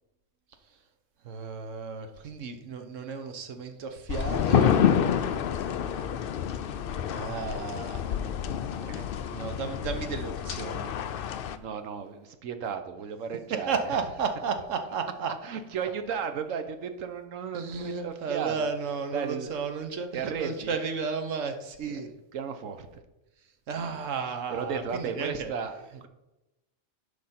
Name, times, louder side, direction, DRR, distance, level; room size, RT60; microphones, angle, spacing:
voice 1, 1.2-4.7 7.1-8.0 9.3-10.9 13.5-15.3 17.5-22.1 23.7-25.5, right 5 dB, 75° right, 7 dB, 1.3 m, -33 dB
sound 1, 4.1-11.6, left 8 dB, 65° left, 0.6 m, -28 dB
voice 2, 5.1-5.5 8.0-8.3 8.8-9.1 9.9-10.2 11.6-13.7 15.4-18.7 19.1-19.5 20.1-20.8 21.9-22.0 22.3-23.0 24.5-26.1, right 6 dB, 90° right, 9 dB, 1.2 m, -35 dB
10.0 x 5.4 x 4.3 m, 0.97 s
omnidirectional pair, 1.3 m